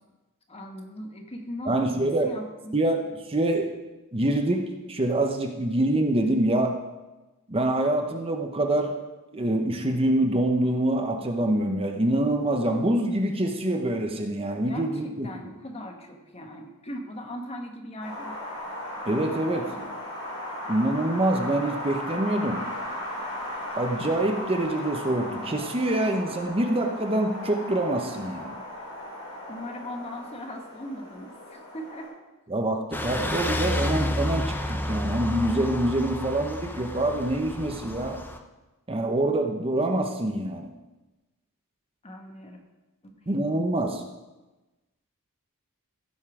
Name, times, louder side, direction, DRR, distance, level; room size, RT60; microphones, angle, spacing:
voice 1, 0.5-2.8 14.7-18.3 19.4-19.9 29.5-32.1 42.0-42.6 43.0-43.1, left 1 dB, 30° left, 3 dB, 1.2 m, -39 dB
voice 2, 1.7-2.3 2.7-3.0 3.3-3.8 4.1-6.8 7.5-9.0 9.3-15.3 19.1-19.7 20.7-22.6 23.7-28.5 32.5-38.2 38.9-40.7 43.3-44.0, right 1 dB, 25° right, 3 dB, 0.8 m, -25 dB
Wind, 18.0-32.1, left 1 dB, 80° left, 4.0 m, -36 dB
sound 1, 32.9-38.4, left 1 dB, 10° left, 0.6 m, -30 dB
15.5 x 5.6 x 4.9 m, 1.1 s
head